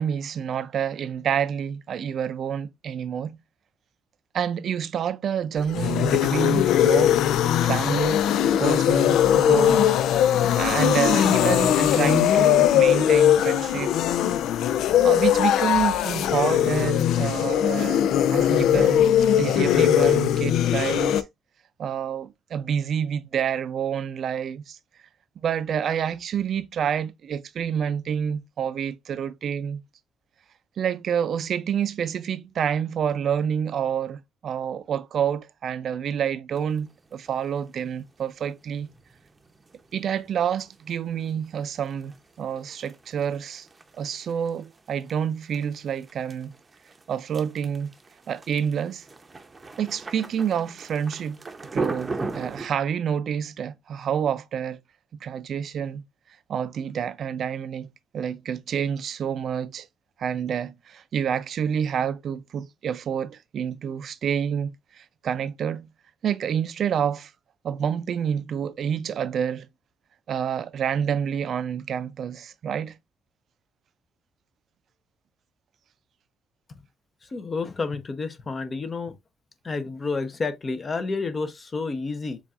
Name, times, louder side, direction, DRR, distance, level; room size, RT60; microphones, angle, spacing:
voice 1, 0.0-3.4 4.3-7.2 7.6-13.9 15.0-18.0 18.3-19.1 19.4-21.2 21.8-24.8 25.4-29.8 30.8-38.9 39.9-42.1 42.4-43.7 44.0-46.5 47.1-47.9 48.3-49.0 49.8-51.4 51.7-54.8 55.2-56.0 56.5-57.9 58.1-59.9 60.2-65.9 66.2-67.3 67.6-69.7 70.3-73.0, right 8 dB, 60° right, 0.5 m, -28 dB
sound 1, 5.6-21.2, left 10 dB, 80° left, 0.3 m, -20 dB
sound 2, 36.5-52.7, right 3 dB, 25° right, 0.7 m, -39 dB
voice 2, 77.3-79.1 79.6-82.4, left 4 dB, 35° left, 0.8 m, -30 dB
7.0 x 2.5 x 2.5 m
cardioid pair, 90°, 0 cm